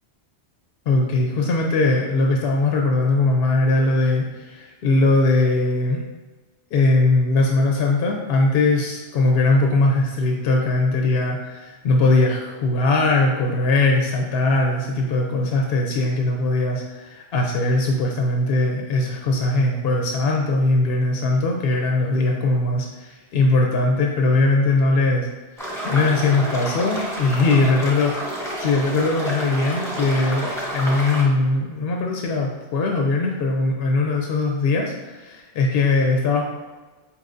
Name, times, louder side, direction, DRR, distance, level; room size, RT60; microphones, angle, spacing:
voice 1, 0.9-6.0 6.7-25.3 25.8-28.1 28.6-36.4, left 2 dB, 70° left, 1 dB, 0.8 m, -20 dB
sound 1, 25.6-31.2, right 1 dB, 5° left, 0.9 m, -29 dB
5.4 x 2.9 x 2.5 m, 1.3 s
omnidirectional pair, 1.1 m